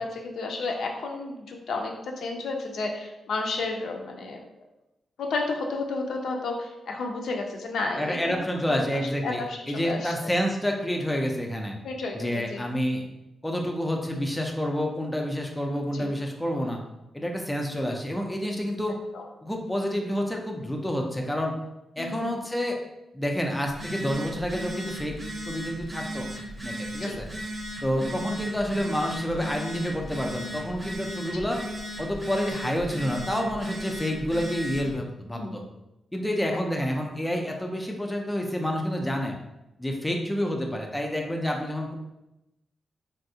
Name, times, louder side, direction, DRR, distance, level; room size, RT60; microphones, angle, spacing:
voice 1, 0.0-4.4 5.2-8.4 8.7-10.3 11.8-12.7 15.9-16.1 19.1-19.2 22.0-22.3 27.0-27.2 27.9-28.1 35.3-35.6, left 3 dB, 75° left, 1 dB, 0.4 m, -32 dB
voice 2, 8.0-11.7 12.1-13.0 13.4-16.8 17.1-19.0 19.4-21.5 22.0-22.8 23.1-25.1 25.4-26.3 26.6-27.3 27.8-31.6 32.0-35.6 36.1-39.4 39.8-42.0, equal, 5° left, 1 dB, 0.3 m, -28 dB
Telephone, 23.7-34.9, equal, 25° right, 0.7 m, -36 dB
3.4 x 2.3 x 2.6 m, 0.93 s
wide cardioid pair, 140°, 0 cm